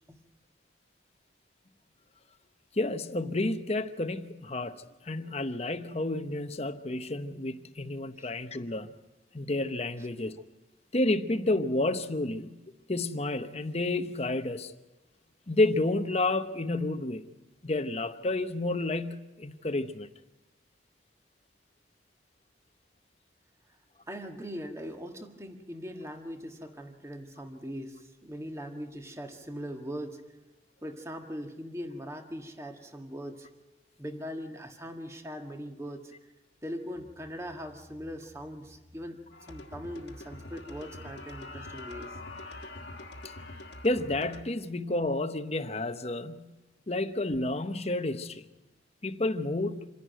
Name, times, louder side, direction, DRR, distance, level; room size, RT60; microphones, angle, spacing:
voice 1, 2.8-8.9 9.3-10.4 10.9-12.6 12.9-14.7 15.5-17.2 17.6-20.1 43.8-46.5 46.9-48.5 49.0-49.9, left 2 dB, 35° left, 0.9 m, -30 dB
voice 2, 24.1-30.2 30.8-33.5 34.0-36.3 36.6-42.2, equal, 15° right, 1.6 m, -41 dB
sound 1, 39.3-44.4, left 2 dB, 65° left, 1.7 m, -44 dB
27.0 x 11.0 x 9.2 m
head